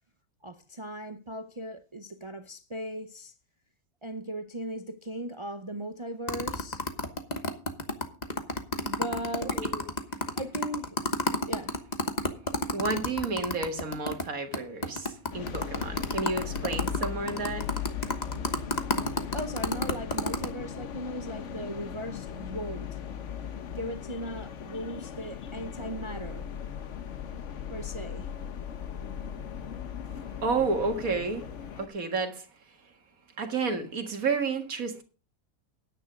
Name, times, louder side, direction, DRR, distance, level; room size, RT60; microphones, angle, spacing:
voice 1, 0.4-3.3 4.0-6.8 8.8-9.7 10.3-11.0 11.5-11.8 19.0-23.0 23.7-26.5 27.7-28.3, right 1 dB, 30° right, 0.5 m, -38 dB
sound 1, 6.3-14.2 14.5-14.6 14.8-20.5, left 2 dB, 30° left, 1.2 m, -30 dB
voice 2, 9.4-9.8 12.7-17.7 30.4-31.5 31.8-32.5 33.4-35.0, right 4 dB, 75° right, 2.1 m, -31 dB
sound 2, 15.3-31.9, left 8 dB, 60° left, 1.2 m, -38 dB
10.0 x 8.9 x 5.1 m
omnidirectional pair, 1.5 m